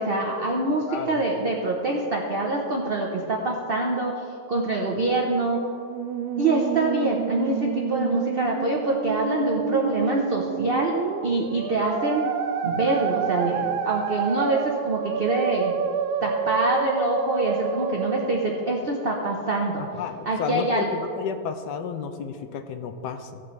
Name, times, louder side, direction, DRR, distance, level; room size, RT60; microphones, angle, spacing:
voice 1, 0.0-5.6 6.4-11.0 11.2-12.3 12.6-15.7 16.2-19.8 20.2-20.9, right 2 dB, 55° right, -1 dB, 0.6 m, -25 dB
voice 2, 0.9-1.2 20.0-23.4, left 6 dB, 70° left, 7 dB, 1.1 m, -32 dB
Musical instrument, 5.7-18.7, right 7 dB, 85° right, 1.4 m, -29 dB
16.5 x 5.9 x 3.2 m, 2.4 s
omnidirectional pair, 2.2 m